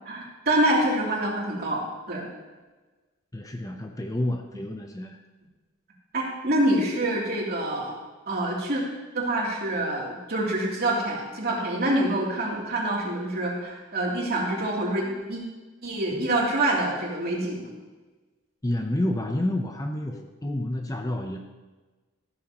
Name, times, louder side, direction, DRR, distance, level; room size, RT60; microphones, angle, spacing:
voice 1, 0.0-2.3 6.1-8.0 8.3-8.8 9.1-15.4 15.8-17.7, right 1 dB, 45° right, -3 dB, 3.0 m, -26 dB
voice 2, 3.3-5.2 16.1-16.3 18.6-21.4, left 1 dB, 15° left, 4 dB, 0.7 m, -29 dB
14.0 x 13.0 x 3.0 m, 1.2 s
head